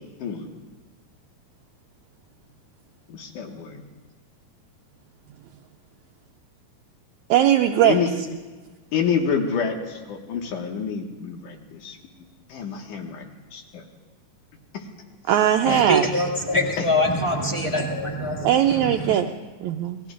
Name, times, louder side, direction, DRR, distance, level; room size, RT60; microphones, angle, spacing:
voice 1, 3.1-3.8 7.8-8.1 8.9-12.0 12.5-13.8 14.7-14.8 15.6-15.8 16.8-16.9, left 6 dB, 75° left, 2 dB, 3.0 m, -28 dB
voice 2, 7.3-8.0 15.3-16.1 18.4-19.3 19.6-20.0, right 11 dB, 80° right, 5 dB, 1.8 m, -19 dB
voice 3, 15.7-19.2, left 1 dB, 10° left, -1 dB, 1.5 m, -24 dB
29.5 x 20.0 x 2.5 m, 1.3 s
omnidirectional pair, 3.6 m